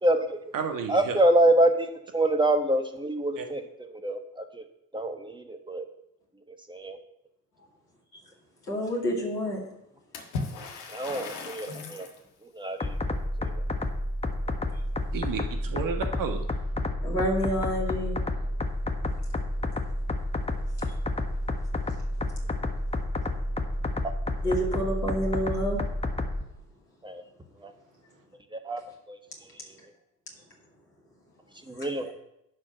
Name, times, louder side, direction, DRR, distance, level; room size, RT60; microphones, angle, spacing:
voice 1, 0.0-0.5 0.9-4.6 4.9-5.8 6.7-7.0 10.9-12.1 12.4-12.9 13.4-13.5 27.0-27.2 27.6-27.7 28.5-28.8 29.1-29.2 31.7-32.1, right 1 dB, 10° right, 6 dB, 1.4 m, -26 dB
voice 2, 0.5-1.2 3.4-3.5 15.1-16.4, right 6 dB, 45° right, 6 dB, 1.4 m, -32 dB
voice 3, 8.7-9.6 11.7-11.8 17.0-18.2 24.4-25.8, equal, 85° left, -3 dB, 2.5 m, -28 dB
Water / Splash splatter, 10.1-12.2, left 4 dB, 60° left, 1.8 m, -37 dB
sound 1, 12.8-26.4, left 1 dB, 15° left, 1.3 m, -30 dB
11.0 x 5.1 x 5.9 m, 0.82 s
figure-of-eight pair, 50°, 46 cm